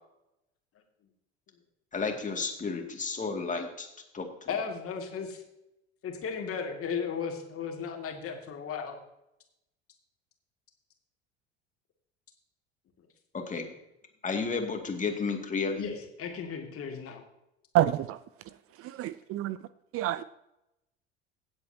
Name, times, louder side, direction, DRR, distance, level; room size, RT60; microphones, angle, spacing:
voice 1, 1.9-3.9 4.1-4.5 13.3-13.7 14.2-15.9, left 4 dB, 25° left, 2.3 m, -32 dB
voice 2, 4.5-5.4 6.0-9.0 15.8-17.2, left 6 dB, 45° left, 2.3 m, -35 dB
voice 3, 17.7-18.2 19.0-19.6 19.9-20.2, right 13 dB, 45° right, 0.5 m, -27 dB
17.0 x 8.0 x 2.8 m
hypercardioid pair, 70°, 33 cm